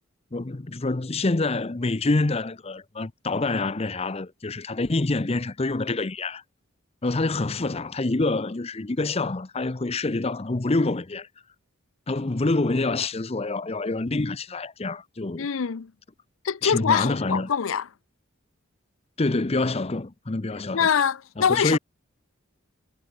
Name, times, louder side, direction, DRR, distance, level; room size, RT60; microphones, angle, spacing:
voice 1, 0.3-6.4 7.0-11.3 12.1-15.5 16.6-17.5 19.2-20.9 21.4-21.8, left 2 dB, 30° left, 0.7 m, -26 dB
voice 2, 15.4-15.9 16.4-17.8 20.7-21.8, left 7 dB, 75° left, 0.6 m, -24 dB
head